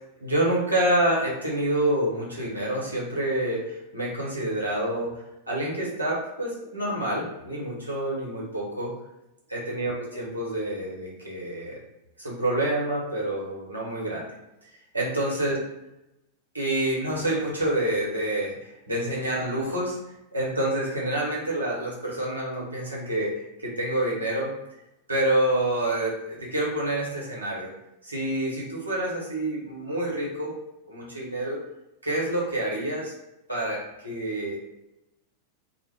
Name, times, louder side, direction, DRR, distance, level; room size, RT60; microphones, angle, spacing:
voice 1, 0.2-5.2 5.5-8.9 9.5-11.8 12.2-14.3 14.9-15.6 16.5-20.0 20.3-23.3 23.6-24.6 25.1-27.7 28.0-30.5 30.9-31.6 32.0-33.1 33.5-34.6, right 1 dB, 80° right, -5 dB, 0.9 m, -27 dB
2.2 x 2.1 x 3.3 m, 0.92 s
figure-of-eight pair, 90°, 0 cm